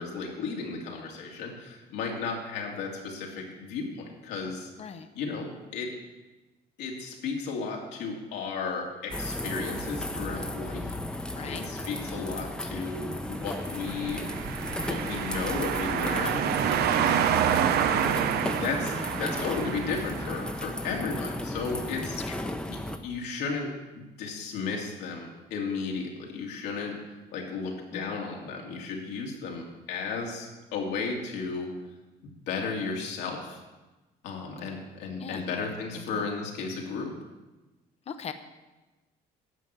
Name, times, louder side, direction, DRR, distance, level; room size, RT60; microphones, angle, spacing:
voice 1, 0.0-4.7 5.1-5.9 6.8-14.2 14.8-17.3 17.8-18.0 18.6-22.2 22.7-22.8 23.0-23.7 24.2-31.7 32.2-33.6 34.2-37.1, left 4 dB, 85° left, 0 dB, 2.4 m, -34 dB
sound 1, 9.1-23.0, left 1 dB, 5° left, 0.9 m, -34 dB
voice 2, 11.3-11.7 17.0-17.1 22.3-22.6 27.9-28.2 35.2-35.4 35.9-36.3 38.1-38.3, left 7 dB, 40° left, 9 dB, 0.8 m, -40 dB
sound 2, 13.8-20.5, right 9 dB, 70° right, 0.7 m, -28 dB
11.0 x 6.0 x 8.1 m, 1.1 s
cardioid pair, 110°, 17 cm